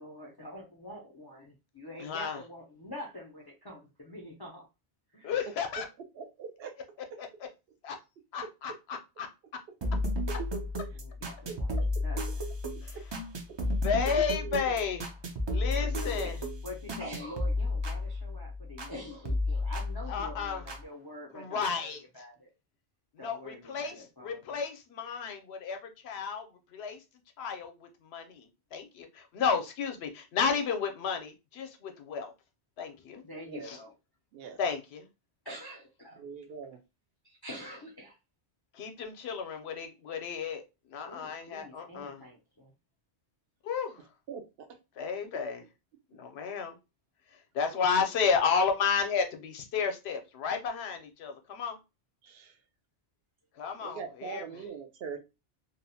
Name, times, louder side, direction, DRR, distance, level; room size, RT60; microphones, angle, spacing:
voice 1, 0.0-4.7 5.1-5.3 10.9-12.5 15.6-16.3 16.6-22.5 23.2-24.6 33.2-33.9 35.4-36.2 37.2-38.2 41.0-42.7, left 1 dB, 35° left, -2 dB, 0.4 m, -45 dB
voice 2, 2.0-2.4 5.2-5.9 7.2-7.3 7.8-8.0 8.3-9.3 12.8-13.0 13.8-15.1 15.5-16.4 20.1-20.6 21.3-22.0 23.2-23.9 24.2-25.8 26.0-26.5 26.7-27.0 27.4-32.3 32.8-33.2 33.6-33.8 34.6-35.1 38.7-40.6 40.9-42.2 43.6-44.0 45.0-45.6 46.1-46.8 47.5-51.8 53.6-54.4, left 6 dB, 75° left, 6 dB, 0.8 m, -32 dB
voice 3, 6.0-6.7 8.4-8.5 11.5-11.9 12.9-13.0 13.5-13.6 14.4-14.8 15.8-16.3 33.4-33.7 34.3-34.6 36.2-36.8 44.3-44.4 47.7-48.0 52.2-52.6 53.8-55.2, right 6 dB, 70° right, 7 dB, 0.7 m, -43 dB
sound 1, 9.8-19.0 19.2-20.8 21.6-21.7, left 2 dB, 40° right, 0.4 m, -33 dB
2.8 x 2.0 x 2.6 m, 0.26 s
omnidirectional pair, 1.1 m